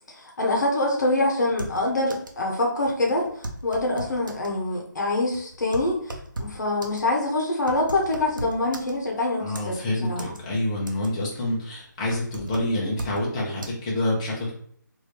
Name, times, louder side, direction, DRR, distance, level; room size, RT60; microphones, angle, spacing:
voice 1, 0.1-10.3, left 2 dB, 60° left, -1 dB, 0.9 m, -25 dB
sound 1, 1.5-2.4 2.7-2.8 3.1-4.6 5.1-9.2 9.5-10.4 10.7-11.3 11.6-13.2 13.6-13.7, right 1 dB, 85° right, 0.7 m, -37 dB
voice 2, 9.4-14.5, left 1 dB, 20° left, -3 dB, 0.8 m, -27 dB
3.1 x 2.7 x 3.2 m, 0.64 s
figure-of-eight pair, 160°, 10 cm